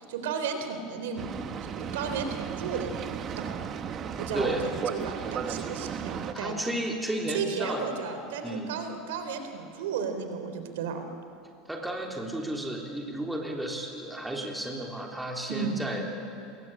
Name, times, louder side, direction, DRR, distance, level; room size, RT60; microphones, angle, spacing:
voice 1, 0.0-1.3 1.7-3.6 4.2-6.7 7.3-11.0 15.5-15.8, right 6 dB, 90° right, 7 dB, 3.5 m, -34 dB
Boat Water vehicle, 1.2-6.3, right 7 dB, 35° right, 1.3 m, -35 dB
voice 2, 4.3-4.7 6.3-7.8 8.4-8.8 11.7-16.0, right 1 dB, 5° right, 0 dB, 3.3 m, -33 dB
27.5 x 21.5 x 8.9 m, 2.6 s
supercardioid pair, 140°, 0 cm